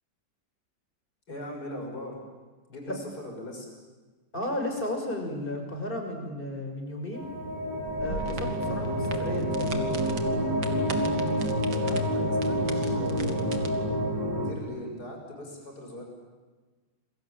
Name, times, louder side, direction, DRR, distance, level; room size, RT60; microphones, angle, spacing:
voice 1, 1.3-2.2 2.7-3.7 11.7-14.0 14.4-16.0, left 1 dB, 55° left, 1 dB, 6.8 m, -40 dB
voice 2, 4.3-7.3 8.0-10.0, left 1 dB, 25° left, 3 dB, 6.3 m, -34 dB
sound 1, 7.1-14.5, equal, 65° right, 4.8 m, -28 dB
sound 2, 7.9-13.7, right 4 dB, 90° right, 3.0 m, -41 dB
29.0 x 22.5 x 9.0 m, 1.3 s
omnidirectional pair, 2.0 m